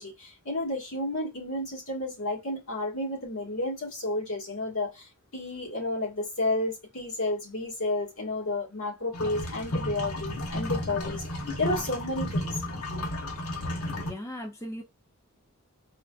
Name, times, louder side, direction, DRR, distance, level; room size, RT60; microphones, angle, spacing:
voice 1, 0.0-11.2 11.6-12.5 12.9-13.0, left 2 dB, 70° left, 1.6 m, -31 dB
sound 1, 9.1-14.1, left 1 dB, 85° left, 1.0 m, -33 dB
voice 2, 13.9-14.8, left 1 dB, 15° left, 0.4 m, -38 dB
4.7 x 2.3 x 2.4 m
head